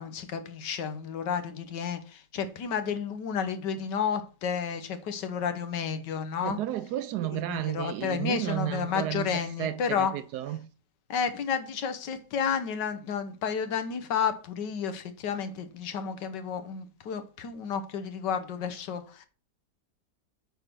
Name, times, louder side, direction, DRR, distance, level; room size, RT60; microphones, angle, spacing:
voice 1, 0.0-6.6 7.3-10.1 11.1-19.3, left 7 dB, 85° left, 1.6 m, -31 dB
voice 2, 6.4-10.7, right 12 dB, 75° right, 1.1 m, -32 dB
8.9 x 3.6 x 6.0 m
omnidirectional pair, 1.8 m